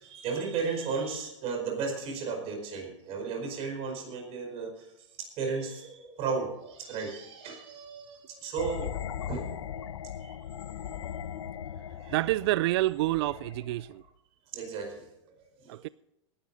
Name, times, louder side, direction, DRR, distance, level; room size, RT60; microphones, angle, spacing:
voice 1, 0.0-8.9 9.3-9.5 10.2-10.4 12.0-12.2 14.5-15.8, right 5 dB, 40° right, 4.8 m, -35 dB
sound 1, 8.6-14.0, left 9 dB, 75° left, 0.9 m, -39 dB
voice 2, 12.1-14.0 15.7-15.9, right 17 dB, 60° right, 0.4 m, -28 dB
18.0 x 11.5 x 4.1 m
hypercardioid pair, 120°, 16 cm